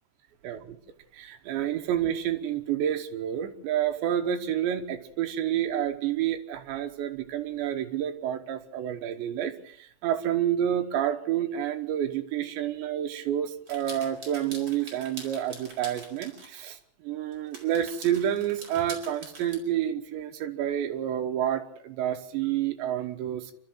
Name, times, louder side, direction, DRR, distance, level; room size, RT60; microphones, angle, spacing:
voice 1, 1.1-16.8 17.0-23.5, right 10 dB, 70° right, 6 dB, 3.1 m, -29 dB
sound 1, 13.7-16.7 17.3-19.6, right 3 dB, 30° right, 4.8 m, -44 dB
28.0 x 13.0 x 7.9 m, 0.67 s
omnidirectional pair, 5.9 m